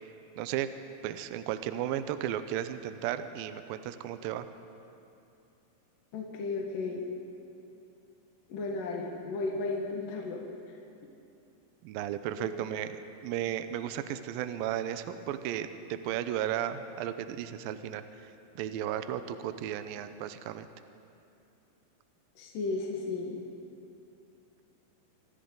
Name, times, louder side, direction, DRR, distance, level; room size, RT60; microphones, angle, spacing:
voice 1, 0.4-0.7 1.0-4.5 11.8-12.9 13.2-18.0 18.6-20.7, right 11 dB, 80° right, 10 dB, 2.2 m, -34 dB
voice 2, 6.1-7.0 8.5-10.4 12.4-12.5 22.4-23.4, left 3 dB, 60° left, -1 dB, 3.0 m, -34 dB
26.0 x 25.5 x 3.9 m, 2.7 s
omnidirectional pair, 4.7 m